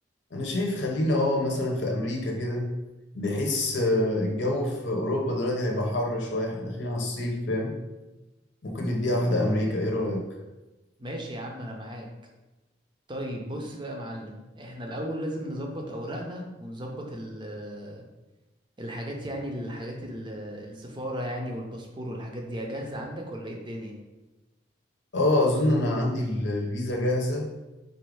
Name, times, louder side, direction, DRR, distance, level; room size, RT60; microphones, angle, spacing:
voice 1, 0.3-2.7 3.1-7.8 8.6-10.3 25.1-27.5, left 1 dB, 70° left, 1 dB, 0.8 m, -26 dB
voice 2, 11.0-12.1 13.1-18.1 18.8-24.0, equal, 25° right, 1 dB, 0.6 m, -35 dB
4.2 x 2.5 x 4.7 m, 1.1 s
head